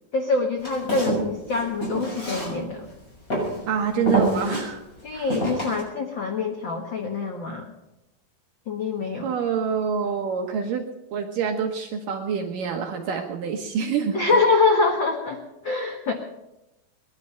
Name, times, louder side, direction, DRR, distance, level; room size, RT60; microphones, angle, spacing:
voice 1, 0.1-2.9 5.0-7.7 8.7-9.3 14.1-16.1, left 3 dB, 55° left, 2 dB, 1.4 m, -25 dB
Walk footsteps, 0.6-2.9 3.3-3.6 4.1-4.6 5.3-5.8, right 2 dB, 20° left, 7.2 m, -26 dB
voice 2, 3.7-4.8 5.1-5.3 9.2-14.4, right 6 dB, 70° right, 3 dB, 2.6 m, -27 dB
22.0 x 11.5 x 5.7 m, 0.92 s
omnidirectional pair, 4.3 m